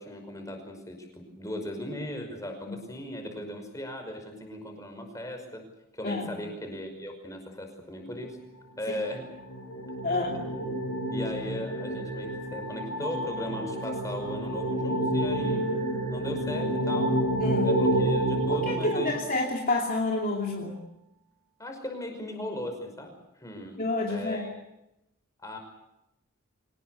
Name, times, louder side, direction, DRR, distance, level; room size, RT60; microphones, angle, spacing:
voice 1, 0.0-5.6 5.9-8.4 8.8-9.2 10.5-10.8 11.1-15.7 16.1-17.2 17.6-19.2 21.6-24.5 25.4-25.6, left 1 dB, 15° left, 4 dB, 5.5 m, -37 dB
sound 1, 8.9-19.7, right 1 dB, 85° left, 5.8 m, -29 dB
voice 2, 10.0-10.4 17.4-17.7 18.5-20.8 23.8-24.5, left 2 dB, 40° left, 0 dB, 2.8 m, -29 dB
25.0 x 19.0 x 8.3 m, 0.86 s
head